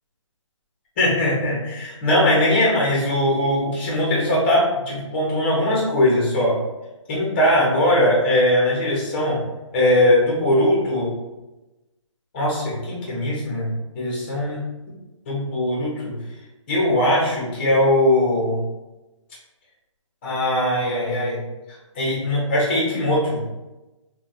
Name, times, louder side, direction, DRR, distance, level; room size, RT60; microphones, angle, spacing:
voice 1, 1.0-6.6 7.1-9.4 9.7-11.1 12.3-13.7 13.9-14.6 15.3-16.1 16.7-18.6 20.2-21.4 21.9-23.4, left 1 dB, 20° left, -5 dB, 0.7 m, -20 dB
3.1 x 2.2 x 2.5 m, 1.1 s
hypercardioid pair, 165°, 17 cm